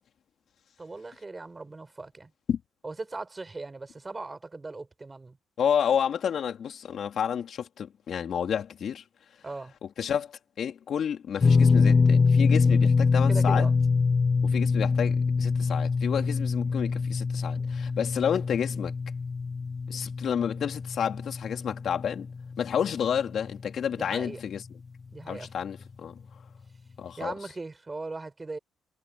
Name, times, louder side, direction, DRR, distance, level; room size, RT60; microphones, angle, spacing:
voice 1, 0.8-2.3 2.8-5.4 9.4-9.7 13.3-13.7 23.9-24.4 25.1-25.7 27.2-28.6, right 3 dB, 25° right, 6.0 m, -38 dB
voice 2, 5.6-9.0 9.8-13.7 14.4-18.9 19.9-22.3 22.6-24.6 25.3-26.2 27.0-27.3, left 8 dB, 60° left, 3.9 m, -30 dB
sound 1, 11.4-23.6 23.9-24.1 25.8-25.9, left 4 dB, 35° left, 0.8 m, -24 dB
cardioid pair, 90°, 0 cm